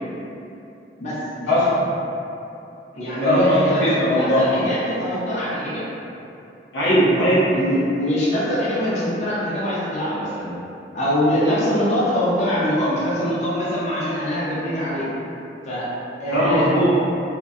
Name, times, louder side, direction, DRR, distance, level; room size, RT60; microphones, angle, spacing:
voice 1, 1.0-1.7 2.9-3.8 4.1-5.8 7.5-10.6 10.9-15.1 15.7-15.9 16.2-16.7, equal, 40° left, -8 dB, 0.4 m, -23 dB
voice 2, 3.2-4.6 6.7-7.5 16.3-16.9, equal, 80° left, -10 dB, 0.6 m, -18 dB
2.5 x 2.1 x 2.3 m, 2.8 s
head